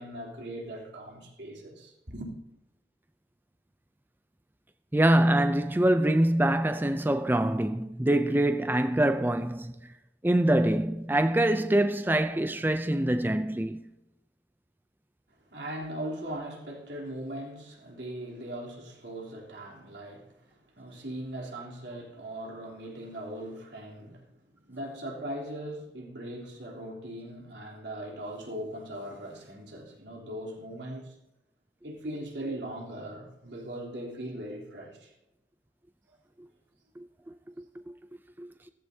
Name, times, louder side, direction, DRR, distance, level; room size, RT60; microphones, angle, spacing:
voice 1, 0.0-2.3 15.5-31.1 31.8-35.1, right 1 dB, 85° right, 3.4 m, -39 dB
voice 2, 4.9-9.7 10.2-13.8 37.0-37.1 37.9-38.0 38.4-38.5, right 1 dB, 10° right, 0.5 m, -24 dB
15.5 x 15.0 x 2.8 m
head